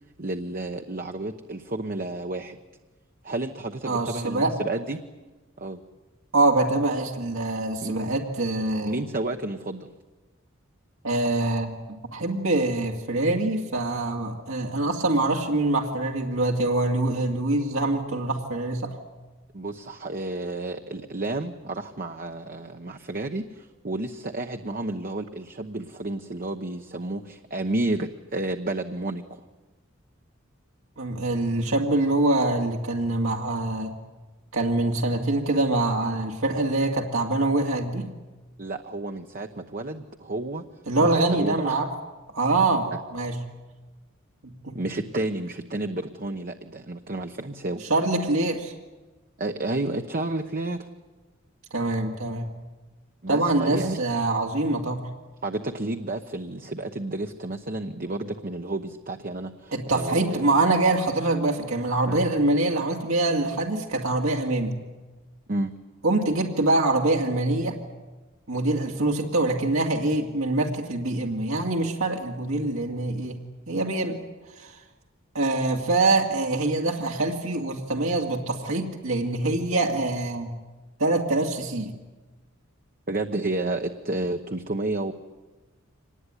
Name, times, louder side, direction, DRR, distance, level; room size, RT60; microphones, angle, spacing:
voice 1, 0.2-2.6 3.2-5.0 5.6-5.8 7.8-7.9 8.8-9.9 19.5-29.4 38.6-40.7 41.0-41.7 44.7-47.9 49.4-50.9 53.2-54.0 55.4-60.4 62.1-62.2 65.5-65.7 83.1-85.1, right 2 dB, 45° right, 5 dB, 1.0 m, -31 dB
voice 2, 3.8-4.5 6.3-9.0 11.0-18.9 31.0-33.9 34.5-38.1 40.9-41.9 42.3-43.4 44.4-44.8 47.9-48.7 51.7-52.5 53.3-55.0 59.7-64.7 66.0-67.8 68.5-73.4 73.7-74.2 74.6-74.8 75.3-80.5 81.0-81.9, right 2 dB, 75° right, 0 dB, 2.4 m, -24 dB
25.0 x 19.5 x 9.9 m, 1.2 s
head